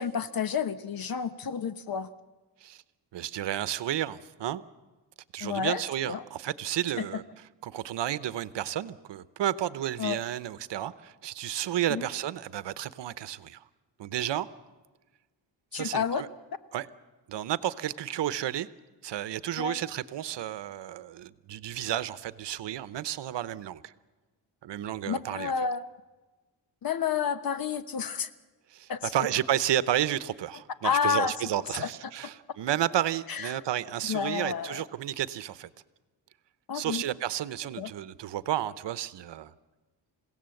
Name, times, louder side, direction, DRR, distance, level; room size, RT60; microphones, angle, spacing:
voice 1, 0.0-2.1 5.4-5.8 6.1-6.2 7.0-7.1 10.0-10.2 11.9-12.0 15.7-16.2 19.6-19.8 25.1-25.8 26.8-28.3 28.9-29.1 30.8-31.3 31.8-31.9 33.3-33.5 34.1-34.8 36.7-37.0 37.8-37.9, left 7 dB, 50° left, 12 dB, 1.1 m, -30 dB
voice 2, 3.1-4.6 5.3-7.2 7.6-13.6 14.0-14.5 15.7-16.3 16.7-16.9 17.3-18.7 19.0-23.9 24.6-25.5 28.7-35.7 36.7-39.5, right 12 dB, 70° right, 15 dB, 0.9 m, -32 dB
28.5 x 17.0 x 7.8 m, 1.2 s
cardioid pair, 125°, 44 cm